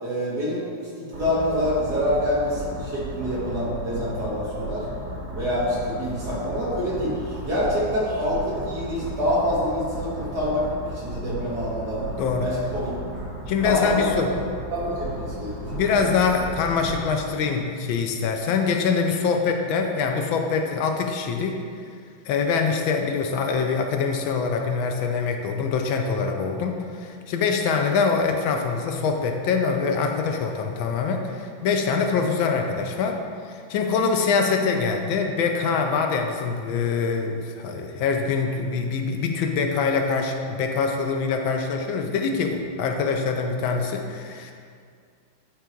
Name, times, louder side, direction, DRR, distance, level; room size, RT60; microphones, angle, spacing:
voice 1, 0.0-4.8 5.3-10.6 10.9-12.0 12.4-12.9 13.6-14.2 14.7-16.1, left 1 dB, 55° right, -8 dB, 2.3 m, -26 dB
sound 1, 1.1-17.0, right 1 dB, 75° right, 2.9 m, -35 dB
voice 2, 13.5-14.3 15.7-21.6 22.3-33.2 33.5-44.5, left 5 dB, 80° left, 4 dB, 1.4 m, -24 dB
9.7 x 3.5 x 4.5 m, 2.2 s
omnidirectional pair, 2.2 m